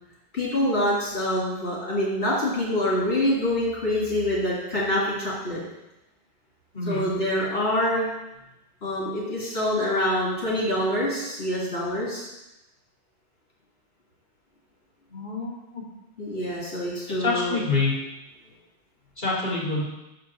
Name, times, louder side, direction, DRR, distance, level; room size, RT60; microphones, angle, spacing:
voice 1, 0.3-5.6 6.9-8.1 8.8-12.3 16.2-17.6, left 1 dB, 70° left, -6 dB, 2.3 m, -25 dB
voice 2, 15.1-15.8 17.2-17.9 19.2-19.9, left 3 dB, 50° left, -6 dB, 2.6 m, -26 dB
5.9 x 5.1 x 5.9 m, 0.94 s
omnidirectional pair, 1.1 m